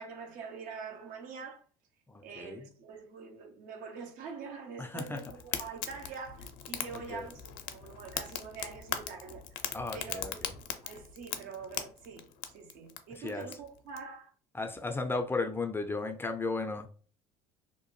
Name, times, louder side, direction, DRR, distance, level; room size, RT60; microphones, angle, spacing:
voice 1, 0.0-1.6 2.2-9.4 9.9-12.3 12.5-14.3, right 5 dB, 65° right, 0.8 m, -45 dB
voice 2, 2.1-2.7 4.8-5.3 7.1-7.3 9.7-10.5 13.1-13.5 14.5-16.9, left 3 dB, 15° left, 0.4 m, -35 dB
Fire, 4.9-14.0, left 9 dB, 70° left, 0.5 m, -40 dB
2.8 x 2.1 x 3.0 m
hypercardioid pair, 75°, 15 cm